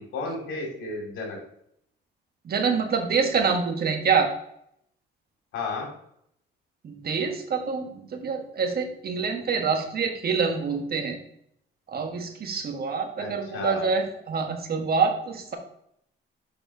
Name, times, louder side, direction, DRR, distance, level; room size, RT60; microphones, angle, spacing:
voice 1, 0.0-1.4 5.5-5.9 13.2-13.9, left 3 dB, 85° left, 0 dB, 2.5 m, -33 dB
voice 2, 2.4-4.3 6.8-11.2 11.9-15.6, right 5 dB, 50° right, 4 dB, 1.4 m, -26 dB
6.9 x 5.6 x 2.7 m, 0.72 s
cardioid pair, 90°, 20 cm